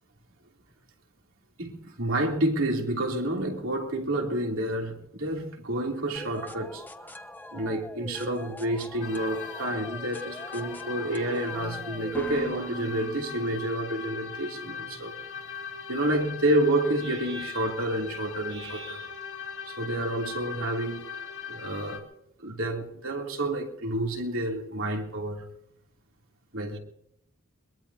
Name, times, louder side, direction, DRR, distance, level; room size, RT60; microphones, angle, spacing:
voice 1, 1.6-7.2 7.5-15.2 15.9-19.1 19.7-21.1 21.5-22.0 22.4-25.5 26.5-26.8, right 1 dB, 70° right, 3.2 m, -29 dB
sound 1, 6.2-13.9, equal, 10° left, 0.9 m, -42 dB
sound 2, 9.0-22.0, left 6 dB, 65° left, 2.4 m, -40 dB
22.5 x 22.0 x 2.8 m
head